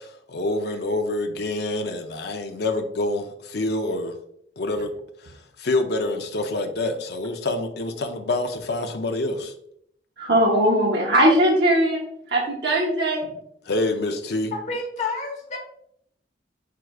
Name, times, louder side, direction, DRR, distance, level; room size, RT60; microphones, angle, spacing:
voice 1, 0.0-4.2 4.6-4.9 5.2-5.3 5.6-9.5 13.7-14.5, left 2 dB, 65° left, 6 dB, 0.6 m, -26 dB
voice 2, 10.2-12.0 12.3-13.3, right 1 dB, 65° right, -2 dB, 0.9 m, -19 dB
voice 3, 14.5-15.6, left 3 dB, 40° left, 0 dB, 1.2 m, -29 dB
4.7 x 4.7 x 2.3 m, 0.71 s
head